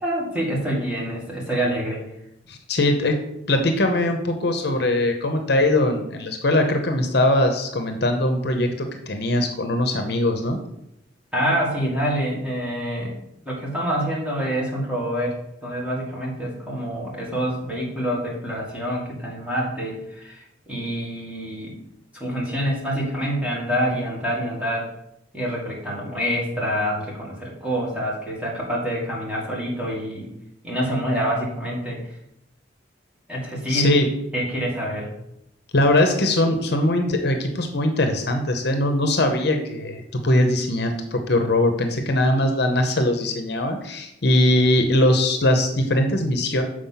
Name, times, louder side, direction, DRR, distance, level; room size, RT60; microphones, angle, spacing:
voice 1, 0.0-2.0 11.3-13.2 13.5-21.8 22.1-24.9 25.3-30.3 30.6-32.0 33.3-33.9 34.3-35.1, equal, 5° right, -5 dB, 2.1 m, -26 dB
voice 2, 2.5-3.2 3.5-10.6 33.7-34.1 35.7-46.6, left 1 dB, 60° left, 5 dB, 0.9 m, -21 dB
7.0 x 4.9 x 5.7 m, 0.81 s
head